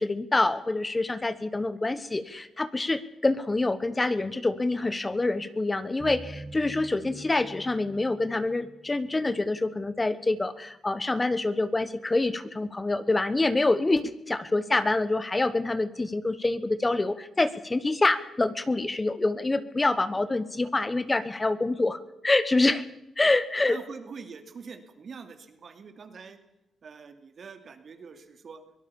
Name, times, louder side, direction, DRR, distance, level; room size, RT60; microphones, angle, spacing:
voice 1, 0.0-22.0 22.2-22.8 23.2-23.8, left 2 dB, 25° left, 13 dB, 1.2 m, -26 dB
sound 1, 6.0-9.7, right 2 dB, 15° right, 1.4 m, -45 dB
voice 2, 23.7-26.4 26.8-28.6, right 5 dB, 55° right, 8 dB, 2.7 m, -44 dB
23.0 x 18.0 x 7.1 m, 0.89 s
cardioid pair, 80°, 0 cm